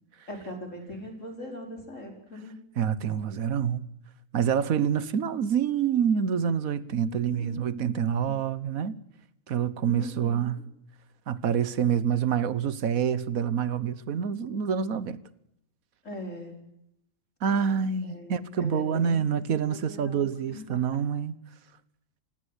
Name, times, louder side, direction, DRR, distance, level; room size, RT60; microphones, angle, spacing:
voice 1, 0.3-2.6 7.1-8.4 9.8-10.4 16.1-16.5 18.1-19.2 19.7-20.6, left 1 dB, 65° left, 5.4 m, -40 dB
voice 2, 2.8-3.9 4.3-9.0 9.5-10.6 11.3-15.2 17.4-21.4, right 7 dB, 85° right, 1.5 m, -27 dB
29.0 x 16.5 x 8.2 m
omnidirectional pair, 1.4 m